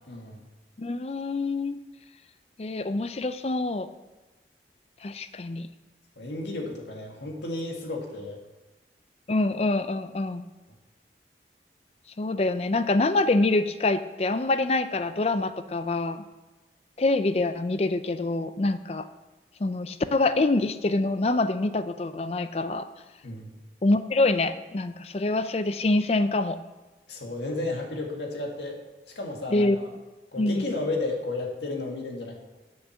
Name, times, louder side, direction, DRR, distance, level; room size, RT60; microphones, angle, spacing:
voice 1, 0.1-0.4 6.2-8.4 23.2-23.5 27.1-28.8 29.1-29.7 30.3-32.4, left 2 dB, 80° left, 1 dB, 1.8 m, -33 dB
voice 2, 0.8-1.8 2.6-3.9 5.0-5.7 9.3-10.4 12.2-16.2 17.0-19.1 19.6-22.9 23.8-26.6 29.5-29.8 30.4-30.7, left 2 dB, 35° left, 12 dB, 0.5 m, -25 dB
8.1 x 6.5 x 7.1 m, 1.2 s
head